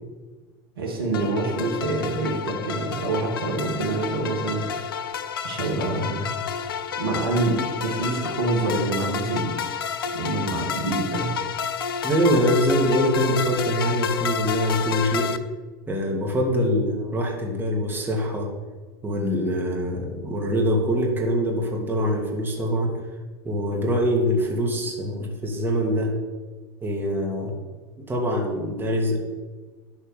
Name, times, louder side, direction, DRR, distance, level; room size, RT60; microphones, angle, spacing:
voice 1, 0.8-4.8 5.4-9.9 10.1-11.3, right 2 dB, 80° right, -1 dB, 2.2 m, -27 dB
sound 1, 1.1-15.4, left 7 dB, 75° left, 0.6 m, -30 dB
voice 2, 12.0-15.3 15.9-18.5 19.0-22.9 23.4-26.1 26.8-27.6 28.1-29.2, equal, 15° right, -2 dB, 2.6 m, -24 dB
11.5 x 4.3 x 6.8 m, 1.3 s
hypercardioid pair, 85°, 12 cm